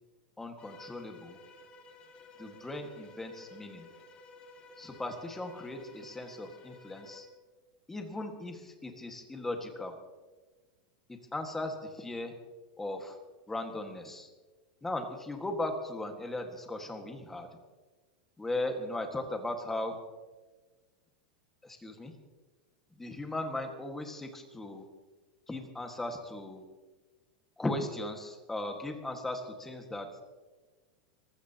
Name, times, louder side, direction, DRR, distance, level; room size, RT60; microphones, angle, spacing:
voice 1, 0.4-1.4 2.4-3.9 4.8-7.3 7.9-9.9 11.1-12.3 12.8-13.2 13.5-14.3 14.8-17.5 18.4-20.0 21.6-22.1 23.0-24.9 25.5-26.6 27.6-30.2, left 2 dB, 5° left, 4 dB, 1.7 m, -37 dB
Bowed string instrument, 0.6-7.3, left 2 dB, 25° left, 2.3 m, -53 dB
25.0 x 16.0 x 2.9 m, 1.3 s
supercardioid pair, 160°, 4 cm